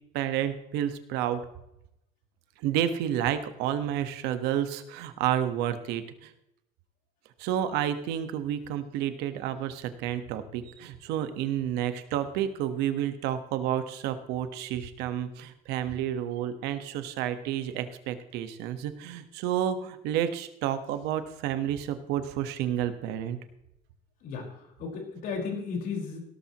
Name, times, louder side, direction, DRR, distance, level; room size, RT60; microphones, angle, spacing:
voice 1, 0.1-1.4 2.6-6.3 7.4-23.4, right 10 dB, 80° right, 9 dB, 1.5 m, -30 dB
voice 2, 24.2-26.2, left 5 dB, 60° left, 0 dB, 5.1 m, -34 dB
17.0 x 13.0 x 3.1 m, 0.83 s
cardioid pair, 160°, 17 cm